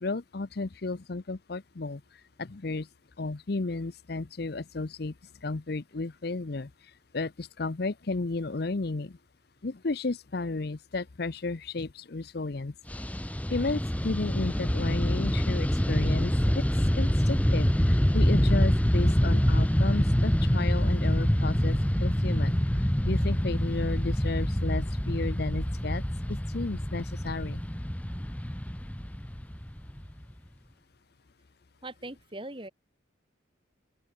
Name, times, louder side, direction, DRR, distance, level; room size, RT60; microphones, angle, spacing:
voice 1, 0.0-2.0 2.4-2.9 3.2-5.1 5.4-6.7 7.1-9.2 9.6-12.7 13.5-16.6 16.9-22.6 23.0-26.0 26.3-27.6, left 3 dB, 55° left, 0.7 m, -33 dB
Fixed-wing aircraft airplane, 12.9-30.3, equal, 5° left, 0.9 m, -26 dB
voice 2, 31.8-32.7, right 1 dB, 25° right, 4.5 m, -40 dB
open air
head